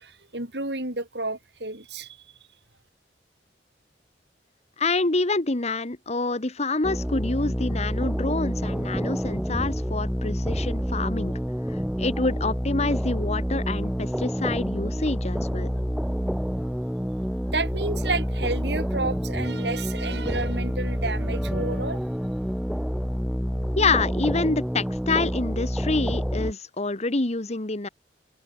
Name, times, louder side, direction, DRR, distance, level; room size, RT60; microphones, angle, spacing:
voice 1, 0.0-2.3 17.5-22.1, right 3 dB, 65° right, 6.5 m, -31 dB
voice 2, 4.8-11.3 11.7-15.7 23.7-27.9, left 3 dB, 40° left, 1.3 m, -27 dB
sound 1, 6.8-26.5, equal, ahead, 0.7 m, -28 dB
head